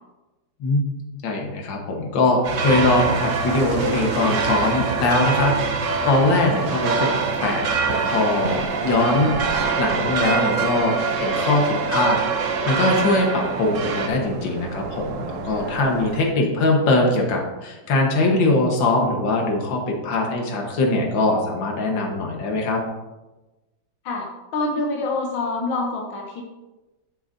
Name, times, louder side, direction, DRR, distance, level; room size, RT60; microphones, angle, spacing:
voice 1, 1.2-7.1 7.4-12.2 12.5-22.8, left 2 dB, 70° left, 1 dB, 2.0 m, -22 dB
sound 1, 2.4-14.1, right 4 dB, 50° right, 1.0 m, -25 dB
sound 2, 6.2-16.2, right 6 dB, 75° right, 0.7 m, -30 dB
voice 2, 24.1-26.4, left 2 dB, 90° left, 0 dB, 1.8 m, -26 dB
10.5 x 7.8 x 2.7 m, 1.1 s
omnidirectional pair, 2.1 m